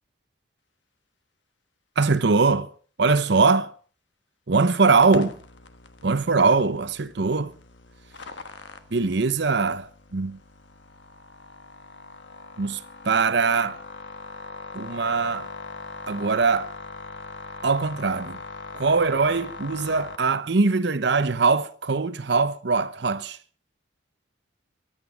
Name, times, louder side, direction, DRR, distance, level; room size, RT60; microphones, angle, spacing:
voice 1, 2.0-2.7 3.0-3.7 4.5-5.4 6.0-7.5 8.9-10.4 12.6-12.8 13.0-13.8 14.7-15.5 16.1-16.7 17.6-18.4 18.7-23.4, right 4 dB, 60° right, 0.7 m, -22 dB
sound 1, 5.0-20.2, left 3 dB, 70° left, 1.4 m, -41 dB
23.0 x 9.0 x 5.0 m
head